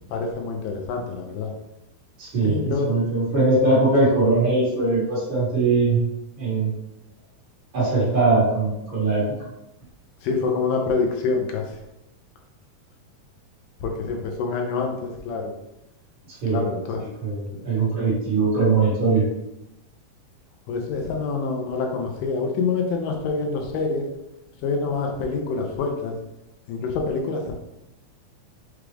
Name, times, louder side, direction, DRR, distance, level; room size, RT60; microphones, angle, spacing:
voice 1, 0.1-1.5 2.4-2.9 10.2-11.6 13.8-15.5 16.5-17.0 17.5-17.7 20.7-24.1 24.6-26.2 26.7-27.5, left 4 dB, 80° left, 2 dB, 2.1 m, -26 dB
voice 2, 2.2-6.0 6.4-6.7 7.7-9.2 16.4-16.6 17.2-19.2, right 3 dB, 45° right, -9 dB, 1.7 m, -21 dB
6.0 x 2.4 x 3.3 m, 0.89 s
omnidirectional pair, 4.0 m